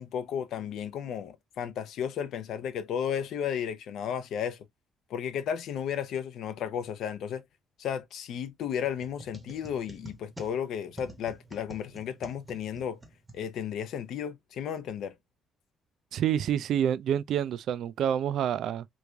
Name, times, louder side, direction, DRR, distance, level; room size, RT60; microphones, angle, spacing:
voice 1, 0.0-4.7 5.1-7.4 7.8-13.0 13.3-15.2, left 8 dB, 65° left, 0.6 m, -33 dB
sound 1, 8.8-13.9, right 1 dB, 10° right, 0.9 m, -48 dB
voice 2, 16.1-18.9, right 9 dB, 60° right, 0.3 m, -28 dB
3.1 x 2.5 x 3.4 m
cardioid pair, 140°, 0 cm